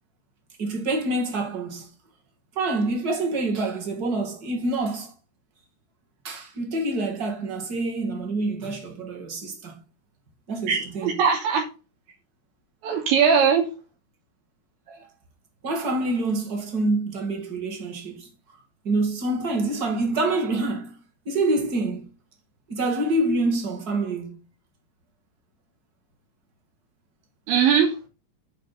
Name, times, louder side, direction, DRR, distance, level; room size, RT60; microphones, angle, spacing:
voice 1, 0.6-1.9 2.5-5.1 6.2-9.7 10.5-11.1 12.8-13.1 14.9-15.1 15.6-18.3 18.8-22.1 22.7-24.4, right 2 dB, 35° right, 1.5 m, -26 dB
voice 2, 10.7-11.6 12.8-13.7 27.5-27.9, right 7 dB, 85° right, 5.1 m, -20 dB
8.9 x 5.3 x 5.8 m
omnidirectional pair, 5.2 m